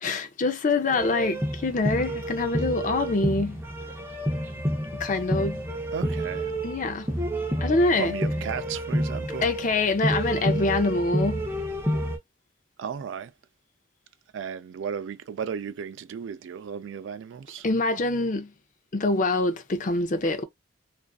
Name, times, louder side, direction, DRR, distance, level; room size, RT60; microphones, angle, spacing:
voice 1, 0.0-3.6 4.9-5.6 6.6-7.1 7.6-8.1 9.4-11.5 17.6-18.5 18.9-20.4, left 2 dB, 40° left, 0.5 m, -25 dB
sound 1, 0.9-12.2, equal, 15° right, 0.6 m, -29 dB
voice 2, 5.9-6.5 8.0-9.5 12.8-13.3 14.3-17.6, right 7 dB, 80° right, 0.3 m, -34 dB
2.5 x 2.4 x 2.3 m
head